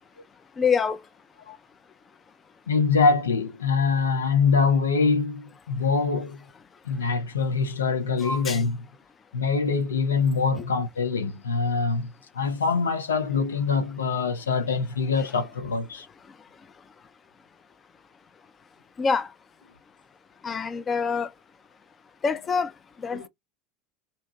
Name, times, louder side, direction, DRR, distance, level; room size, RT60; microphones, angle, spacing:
voice 1, 0.6-1.0 8.2-8.6 19.0-19.3 20.4-21.3 22.2-22.7 23.0-23.3, left 5 dB, 25° left, 0.4 m, -25 dB
voice 2, 2.7-6.4 6.8-8.8 9.3-16.1 23.1-23.3, left 4 dB, 80° left, 0.5 m, -24 dB
2.7 x 2.2 x 2.7 m
figure-of-eight pair, 80°, 0 cm